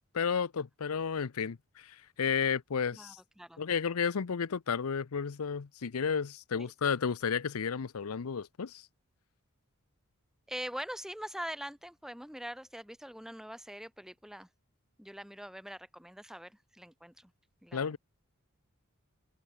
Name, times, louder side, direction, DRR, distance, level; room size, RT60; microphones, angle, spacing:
voice 1, 0.1-3.2 3.6-8.9 17.7-18.0, left 6 dB, 80° left, 0.6 m, -32 dB
voice 2, 2.9-3.6 6.5-6.7 10.5-14.5 15.0-17.3 17.6-17.9, equal, ahead, 2.3 m, -43 dB
head